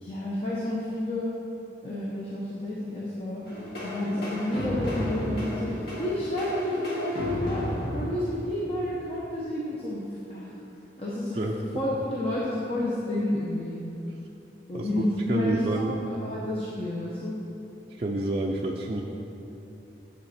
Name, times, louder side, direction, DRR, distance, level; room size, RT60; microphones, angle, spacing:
voice 1, 0.0-1.3 1.8-3.4 3.8-7.6 7.9-10.5 11.0-11.4 11.7-13.8 14.7-17.4, left 1 dB, 35° left, -6 dB, 1.0 m, -30 dB
sound 1, 3.4-8.9, equal, 60° left, 1.9 m, -33 dB
voice 2, 15.3-16.0 17.9-19.0, right 2 dB, 35° right, -2 dB, 0.4 m, -28 dB
9.1 x 7.6 x 4.3 m, 2.9 s
head